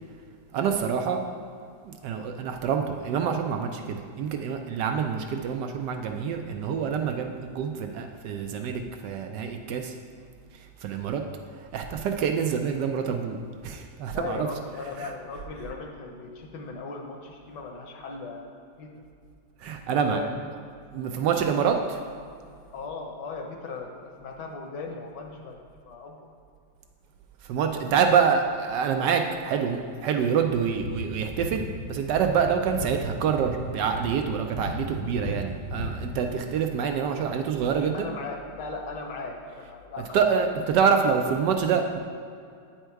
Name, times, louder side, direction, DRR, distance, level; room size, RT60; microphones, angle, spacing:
voice 1, 0.5-1.2 1.9-9.9 10.8-11.2 11.7-13.4 13.6-14.5 15.0-15.1 19.6-20.2 20.9-22.0 27.5-28.4 28.7-38.1 40.1-42.0, right 6 dB, 75° right, 5 dB, 1.0 m, -26 dB
voice 2, 14.1-18.9 20.1-20.5 22.7-26.3 28.2-28.3 37.9-40.2, left 4 dB, 65° left, 2 dB, 1.3 m, -38 dB
sound 1, 30.5-36.1, equal, 35° left, 0.4 m, -36 dB
9.0 x 4.4 x 4.6 m, 2.3 s
omnidirectional pair, 2.2 m